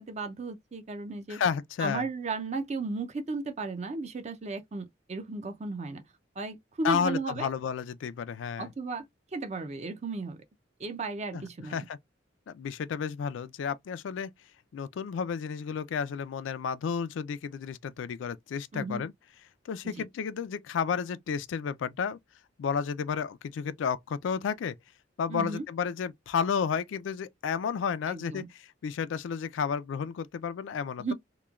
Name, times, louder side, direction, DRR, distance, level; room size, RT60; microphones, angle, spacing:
voice 1, 0.0-1.4 1.8-6.0 6.4-7.5 8.6-9.0 9.3-10.4 10.8-11.8 18.7-19.0 19.8-20.0 25.3-25.6 28.1-28.5 31.0-31.1, right 3 dB, 35° right, 0.5 m, -35 dB
voice 2, 1.3-2.0 6.8-8.7 11.3-11.4 11.7-12.0 12.5-14.3 14.7-19.1 19.7-22.2 22.6-24.8 25.2-31.1, left 6 dB, 90° left, 0.3 m, -32 dB
3.0 x 2.2 x 2.3 m
head